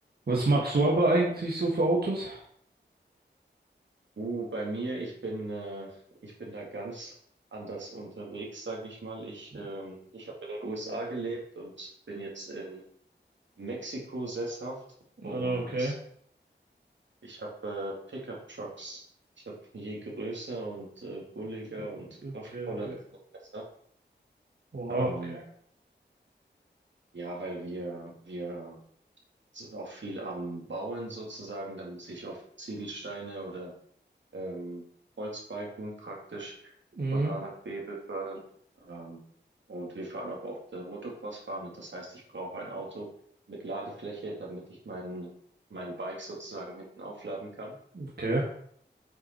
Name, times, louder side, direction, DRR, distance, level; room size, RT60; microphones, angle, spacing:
voice 1, 0.3-2.4 15.2-15.9 22.2-22.7 24.7-25.4 37.0-37.3 48.0-48.4, right 2 dB, 55° right, -3 dB, 1.7 m, -27 dB
voice 2, 4.2-7.2 7.5-12.8 13.6-14.8 15.2-15.9 17.2-19.0 19.5-22.1 22.3-22.9 23.5-23.6 24.9-25.4 27.1-28.8 29.5-33.7 34.3-34.8 35.2-36.5 37.1-38.4 38.8-39.2 39.7-43.1 43.5-45.3 45.7-47.7, right 2 dB, 80° right, -2 dB, 2.6 m, -38 dB
8.0 x 5.5 x 4.6 m, 0.63 s
wide cardioid pair, 60°, 19 cm